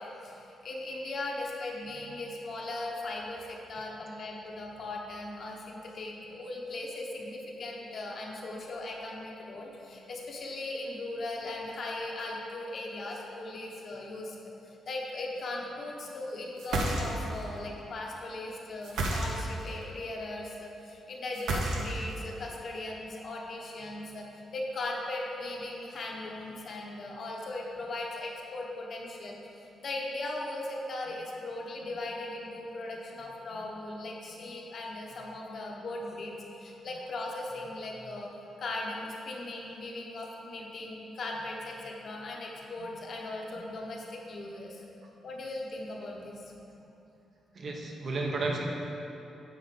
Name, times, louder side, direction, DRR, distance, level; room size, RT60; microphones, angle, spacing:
voice 1, 0.0-14.4 14.6-24.3 24.5-29.4 29.8-38.3 38.6-44.8 45.2-46.4, left 2 dB, 40° left, -1 dB, 1.0 m, -38 dB
sound 1, 16.6-17.4 18.8-19.7 21.3-22.2, right 2 dB, 70° right, 1.0 m, -30 dB
voice 2, 47.5-48.6, right 3 dB, 40° right, 0 dB, 0.9 m, -32 dB
9.2 x 4.0 x 6.8 m, 2.9 s
wide cardioid pair, 170°, 0 cm